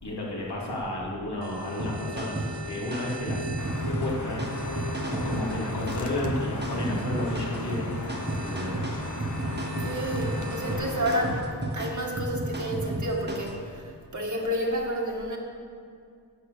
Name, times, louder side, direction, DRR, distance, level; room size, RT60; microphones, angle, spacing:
voice 1, 0.0-4.5 5.1-7.9 8.4-8.8, left 1 dB, 70° left, -5 dB, 3.2 m, -32 dB
sound 1, 1.4-10.7, equal, 85° right, 1.9 m, -41 dB
sound 2, 1.8-13.6, right 2 dB, 25° right, 1.6 m, -33 dB
sound 3, 3.6-11.4, left 3 dB, 45° left, 1.0 m, -37 dB
voice 2, 9.6-11.4 11.7-13.8 14.1-15.4, equal, 45° right, 0 dB, 1.9 m, -30 dB
11.5 x 8.5 x 6.9 m, 2.4 s
wide cardioid pair, 95°, 42 cm